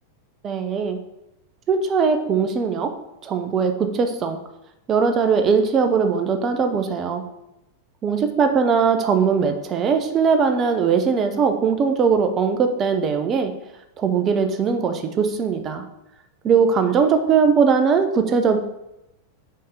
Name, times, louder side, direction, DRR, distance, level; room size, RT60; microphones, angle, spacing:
voice 1, 0.4-1.0 1.7-2.9 3.2-4.4 4.9-7.2 8.0-13.5 14.0-15.8 16.4-18.6, right 5 dB, 30° right, 7 dB, 0.7 m, -20 dB
5.5 x 4.3 x 4.9 m, 0.90 s
figure-of-eight pair, 90°, 0 cm